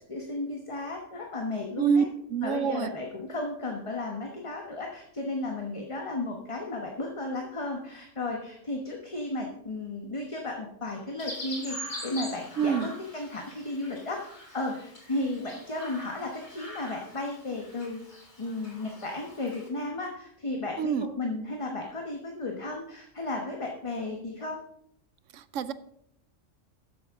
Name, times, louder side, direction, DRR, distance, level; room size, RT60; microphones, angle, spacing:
voice 1, 0.1-2.0 2.4-18.0 18.4-24.6, left 2 dB, 25° left, 1 dB, 1.1 m, -34 dB
voice 2, 2.3-2.9 12.6-12.9 20.8-21.1 25.3-25.7, right 7 dB, 75° right, 15 dB, 1.0 m, -26 dB
Chirp tweet, 11.2-19.7, left 1 dB, 55° left, 4.2 m, -43 dB
13.0 x 9.2 x 3.6 m, 0.71 s
omnidirectional pair, 1.3 m